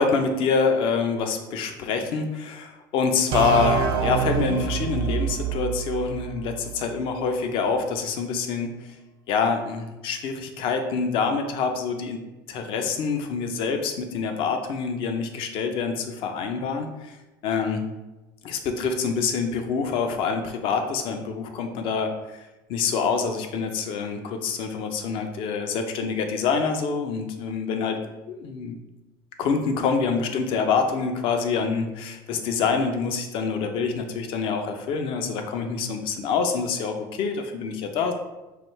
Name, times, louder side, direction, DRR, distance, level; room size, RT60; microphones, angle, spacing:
voice 1, 0.0-8.7 9.3-12.2 12.5-17.2 17.4-17.9 18.4-22.4 22.7-28.0 28.3-28.8 29.4-38.1, left 5 dB, 60° left, 6 dB, 0.6 m, -26 dB
sound 1, 3.3-6.9, right 7 dB, 55° right, 0.5 m, -26 dB
4.7 x 2.3 x 3.2 m, 1.1 s
supercardioid pair, 95°, 10 cm